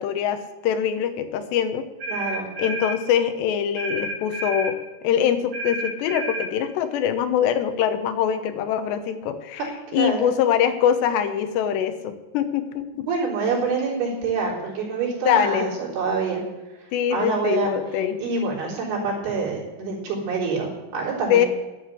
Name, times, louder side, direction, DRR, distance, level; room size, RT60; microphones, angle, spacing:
voice 1, 0.0-1.8 2.6-9.6 9.9-13.1 15.2-15.7 16.9-18.2 21.3-21.5, left 9 dB, 90° left, 9 dB, 3.2 m, -23 dB
sound 1, 2.0-3.0 3.8-4.8 5.5-6.5, right 1 dB, 45° right, 3.4 m, -30 dB
voice 2, 2.1-2.5 9.9-10.3 13.0-16.4 17.1-21.5, right 4 dB, 70° right, -5 dB, 5.7 m, -26 dB
11.5 x 9.4 x 8.3 m, 1.1 s
omnidirectional pair, 4.8 m